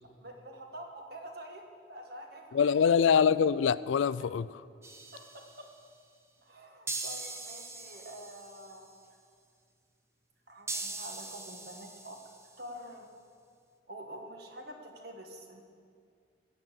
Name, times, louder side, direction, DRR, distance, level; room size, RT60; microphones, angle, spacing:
voice 1, 0.2-2.9 5.1-5.2 6.4-8.9 10.5-12.2 12.6-13.1 13.9-15.6, right 1 dB, 55° right, 1.6 m, -46 dB
voice 2, 2.5-4.6, left 7 dB, 80° left, 0.3 m, -24 dB
sound 1, 4.8-5.7 6.9-8.8 10.7-12.6, right 3 dB, 15° right, 0.8 m, -41 dB
15.5 x 7.9 x 7.5 m
head